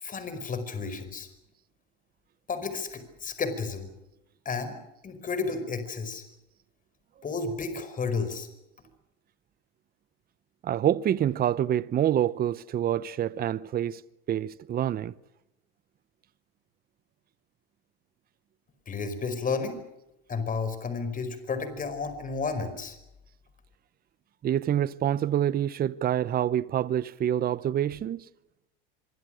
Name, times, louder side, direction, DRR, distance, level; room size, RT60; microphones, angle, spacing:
voice 1, 0.0-1.3 2.5-3.9 4.5-4.8 5.0-6.2 7.2-8.5 18.9-19.8 20.3-23.0, left 4 dB, 25° left, 5.1 m, -32 dB
voice 2, 10.6-14.0 14.3-15.1 24.4-28.2, right 10 dB, 30° right, 0.8 m, -26 dB
25.5 x 24.0 x 6.4 m
supercardioid pair, 110°, 30 cm